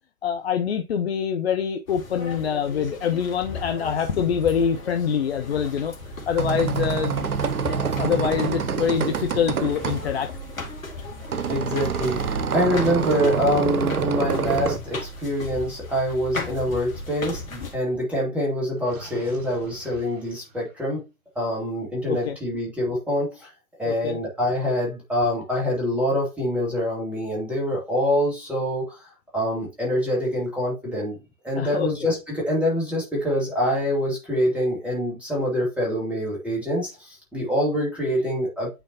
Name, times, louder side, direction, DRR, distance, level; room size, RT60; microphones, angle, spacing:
voice 1, 0.2-5.9 6.3-7.3 7.7-10.3 17.6-17.7 22.1-22.4 23.8-24.2 31.6-31.9, left 7 dB, 45° left, 0.7 m, -25 dB
sound 1, 1.9-17.8, left 3 dB, 65° left, 2.3 m, -36 dB
sound 2, 6.1-14.8, right 6 dB, 80° right, 0.7 m, -27 dB
voice 2, 11.5-21.0 21.4-23.5 23.8-29.1 29.3-31.2 31.4-38.7, equal, 5° right, 2.2 m, -25 dB
Gurgling, 18.8-20.9, right 1 dB, 40° right, 4.1 m, -45 dB
9.0 x 4.5 x 2.8 m
figure-of-eight pair, 120°, 44 cm